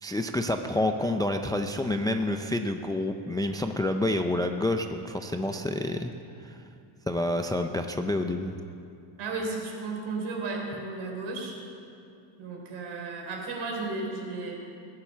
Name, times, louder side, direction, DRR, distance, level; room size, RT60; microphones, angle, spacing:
voice 1, 0.0-6.1 6.4-6.6 7.1-8.6, left 1 dB, 10° left, 6 dB, 0.4 m, -28 dB
voice 2, 9.2-11.6 12.4-14.6, right 3 dB, 70° right, 0 dB, 3.8 m, -34 dB
16.0 x 10.5 x 7.3 m, 2.6 s
cardioid pair, 130°, 49 cm